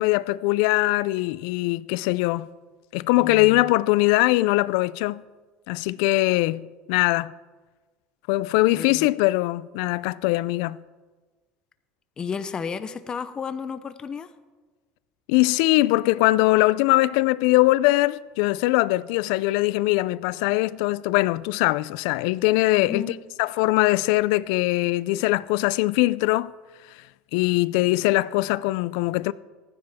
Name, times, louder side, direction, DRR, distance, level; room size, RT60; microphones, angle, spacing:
voice 1, 0.0-2.5 2.9-5.2 5.7-7.3 8.3-10.8 15.3-23.1 23.4-26.5 27.3-29.3, left 19 dB, 75° left, 0.3 m, -21 dB
voice 2, 3.2-3.7 8.7-9.1 12.2-14.3 22.8-23.1, left 6 dB, 25° left, 0.6 m, -33 dB
15.0 x 9.7 x 3.6 m
supercardioid pair, 125°, 3 cm